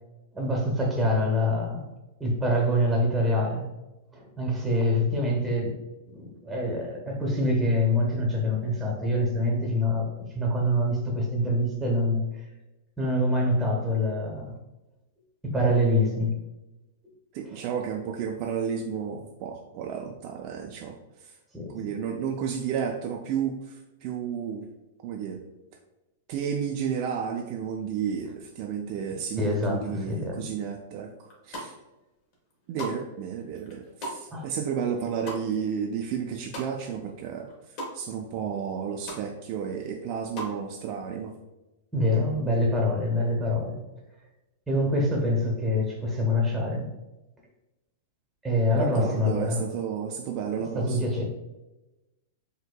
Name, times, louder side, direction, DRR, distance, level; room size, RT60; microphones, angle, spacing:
voice 1, 0.3-1.8 2.2-3.7 4.1-5.7 6.1-12.4 13.0-14.5 15.4-16.4 21.5-21.8 29.4-30.4 34.3-34.5 41.9-43.8 44.7-46.9 48.4-49.6 50.7-51.2, left 1 dB, 10° right, -1 dB, 0.9 m, -25 dB
voice 2, 17.3-21.3 21.7-24.7 25.0-25.4 26.3-31.1 31.4-31.7 32.7-37.5 37.9-41.4 48.7-51.1, right 7 dB, 45° right, 2 dB, 0.4 m, -32 dB
sound 1, 31.3-32.0 32.3-37.1 37.3-37.9 38.4-38.5 38.7-39.2 39.6-40.6, equal, 45° left, 1.2 m, -39 dB
4.4 x 2.8 x 2.2 m, 1.0 s
hypercardioid pair, 135°, 0 cm